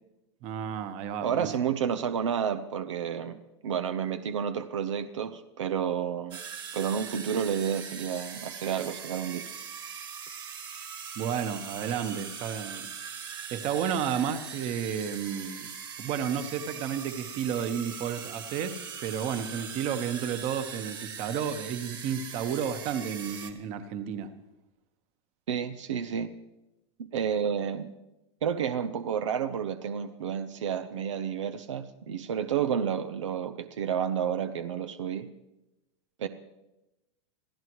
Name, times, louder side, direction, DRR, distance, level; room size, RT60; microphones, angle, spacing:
voice 1, 0.4-1.5 11.1-12.9 13.5-15.7 16.0-24.3, right 8 dB, 45° right, 1.4 m, -32 dB
voice 2, 1.2-3.4 3.6-6.4 6.7-9.4 25.5-26.3 27.1-27.9 28.4-35.3 36.2-36.3, right 8 dB, 85° right, 0.9 m, -30 dB
sound 1, 6.3-23.5, right 7 dB, 30° right, 1.7 m, -41 dB
26.5 x 15.0 x 3.2 m
hypercardioid pair, 125°, 15 cm